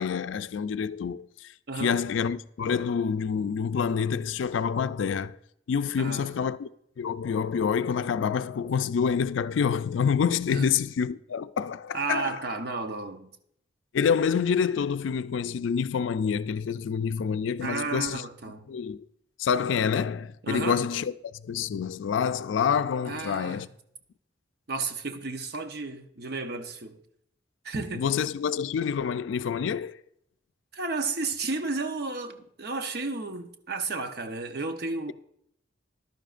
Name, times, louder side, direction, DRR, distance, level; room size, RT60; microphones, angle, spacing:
voice 1, 0.0-5.4 5.7-6.7 7.0-12.4 13.9-18.2 18.7-19.1 19.4-21.1 21.4-23.7 27.9-30.0, left 6 dB, 90° left, 0.4 m, -27 dB
voice 2, 1.7-2.0 6.0-6.3 10.5-10.7 11.9-13.3 17.6-18.7 20.4-20.8 23.0-23.7 24.7-27.0 27.6-28.0 30.7-35.1, right 3 dB, 55° right, 0.8 m, -33 dB
14.0 x 11.5 x 2.5 m
head